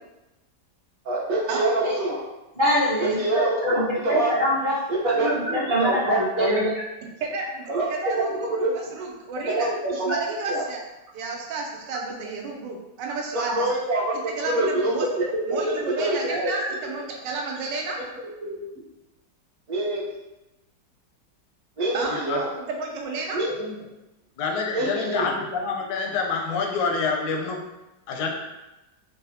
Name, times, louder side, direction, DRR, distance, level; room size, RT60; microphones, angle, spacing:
voice 1, 1.0-2.2 3.0-4.3 4.9-5.4 5.8-6.6 7.7-7.9 8.2-8.7 9.5-10.2 10.4-10.7 13.5-14.1 14.4-16.5 18.4-18.8 19.7-20.0 21.8-22.5 23.3-23.7 24.7-25.2, right 2 dB, 60° right, -6 dB, 1.0 m, -25 dB
voice 2, 2.6-3.2 3.6-4.7 5.2-6.6, equal, 25° right, -8 dB, 0.6 m, -23 dB
voice 3, 7.2-10.8 11.1-13.7 14.4-15.1 15.5-18.0 21.9-22.2 22.7-23.4, right 3 dB, 90° right, 0 dB, 1.3 m, -31 dB
voice 4, 22.1-22.4 23.6-23.8 24.4-27.6 28.1-28.3, left 4 dB, 85° left, 1 dB, 1.2 m, -27 dB
3.9 x 2.0 x 2.7 m, 0.99 s
omnidirectional pair, 1.9 m